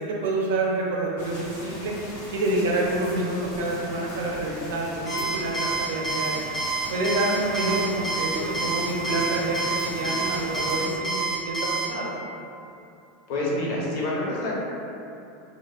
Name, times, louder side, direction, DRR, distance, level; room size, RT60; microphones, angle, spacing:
voice 1, 0.0-1.9 2.3-6.5 6.9-12.1, right 2 dB, 85° right, -2 dB, 0.5 m, -27 dB
sound 1, 1.2-10.9, equal, 85° left, 0.9 m, -39 dB
Alarm, 5.1-11.9, right 3 dB, 15° left, 0.4 m, -28 dB
voice 2, 13.3-14.6, left 1 dB, 65° left, -4 dB, 0.6 m, -27 dB
2.1 x 2.0 x 3.2 m, 2.7 s
supercardioid pair, 135°, 0 cm